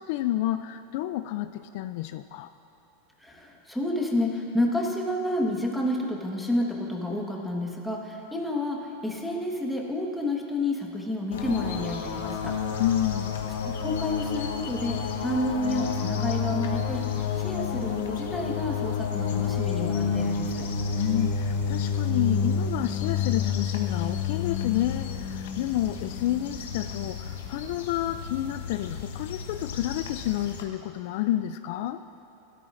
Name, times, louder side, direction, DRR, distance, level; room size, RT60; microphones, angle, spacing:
voice 1, 0.0-2.5 12.8-13.3 20.9-32.0, left 13 dB, 60° left, 11 dB, 0.3 m, -29 dB
voice 2, 3.2-12.6 13.6-20.7, left 1 dB, ahead, -2 dB, 1.4 m, -30 dB
sound 1, 11.3-30.6, left 6 dB, 85° left, 1.1 m, -30 dB
17.5 x 13.0 x 2.6 m, 2.9 s
supercardioid pair, 135°, 0 cm